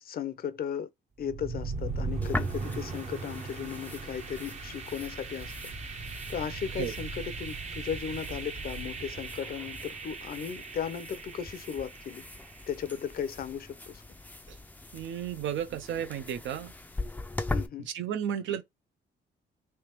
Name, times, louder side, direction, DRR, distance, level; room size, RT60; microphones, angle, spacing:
voice 1, 0.0-0.9 1.2-5.7 6.3-12.2 12.7-14.0 17.5-17.9, left 8 dB, 50° left, 0.6 m, -36 dB
sound 1, 1.2-13.1, right 4 dB, 35° right, 0.7 m, -38 dB
sound 2, 2.2-17.7, left 2 dB, 10° left, 0.4 m, -41 dB
voice 2, 14.9-16.7 17.9-18.6, right 9 dB, 70° right, 0.6 m, -33 dB
3.4 x 2.9 x 3.0 m
cardioid pair, 90°, 20 cm